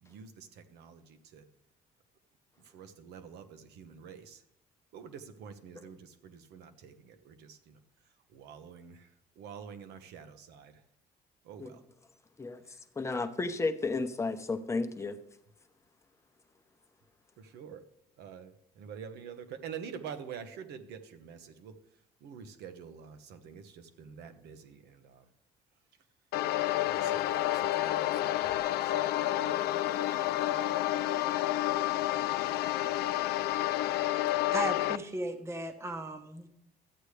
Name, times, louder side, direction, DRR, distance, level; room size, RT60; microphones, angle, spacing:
voice 1, 0.0-1.4 2.7-4.4 4.9-7.8 8.3-9.1 9.4-10.8 11.4-11.8 17.4-17.8 18.2-21.7 22.2-25.2 26.8-29.5, right 7 dB, 80° right, 8 dB, 1.0 m, -47 dB
voice 2, 12.4-15.2, left 3 dB, 15° left, 7 dB, 0.8 m, -33 dB
sound 1, 26.3-35.0, left 14 dB, 75° left, 0.4 m, -29 dB
voice 3, 34.5-36.5, right 2 dB, 15° right, 6 dB, 0.9 m, -36 dB
13.0 x 8.2 x 3.3 m, 0.76 s
cardioid pair, 110°, 17 cm